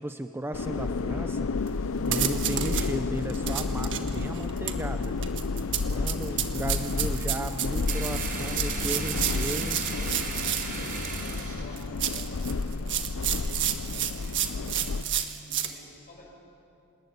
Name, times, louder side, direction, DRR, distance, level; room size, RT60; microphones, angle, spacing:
voice 1, 0.0-5.1 5.8-9.8, right 1 dB, 10° right, 7 dB, 0.7 m, -35 dB
sound 1, 0.5-15.0, left 4 dB, 65° left, 0.6 m, -31 dB
sound 2, 1.7-1.8 2.1-2.9 3.3-11.2 11.8-15.7, right 10 dB, 55° right, 1.6 m, -31 dB
sound 3, 7.9-12.8, right 3 dB, 40° right, 4.5 m, -36 dB
voice 2, 10.9-15.1 15.4-16.3, left 1 dB, 40° left, -1 dB, 6.3 m, -51 dB
26.5 x 20.0 x 9.5 m, 2.9 s
head